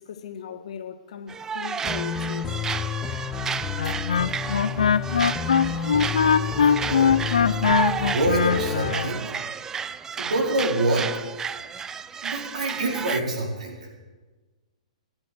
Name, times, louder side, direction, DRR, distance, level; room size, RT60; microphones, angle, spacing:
voice 1, 0.0-2.6, left 8 dB, 65° left, 1.5 m, -38 dB
sound 1, 1.3-13.2, right 6 dB, 15° right, 0.4 m, -32 dB
sound 2, 1.8-8.9, left 7 dB, 15° left, 0.9 m, -31 dB
Wind instrument woodwind instrument, 3.8-9.1, left 7 dB, 80° left, 0.5 m, -22 dB
voice 2, 6.9-7.4 8.0-9.3 10.2-11.1 12.2-13.9, right 1 dB, 75° right, 4.5 m, -26 dB
15.0 x 10.5 x 7.9 m
hypercardioid pair, 130°, 4 cm